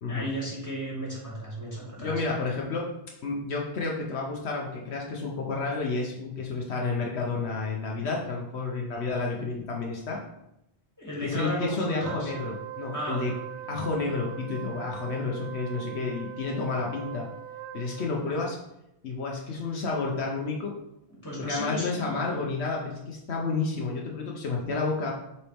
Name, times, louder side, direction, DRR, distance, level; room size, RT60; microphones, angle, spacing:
voice 1, 0.1-2.1 11.0-12.3 12.9-13.2 21.2-22.3, right 1 dB, 15° left, -5 dB, 2.5 m, -34 dB
voice 2, 2.0-2.9 3.2-10.2 11.2-13.3 13.7-17.3 17.7-18.6 19.0-20.8 21.4-25.1, left 3 dB, 75° left, -1 dB, 1.1 m, -30 dB
Wind instrument woodwind instrument, 12.0-18.3, right 12 dB, 85° right, 0.9 m, -41 dB
7.0 x 4.3 x 3.5 m, 0.84 s
omnidirectional pair, 1.1 m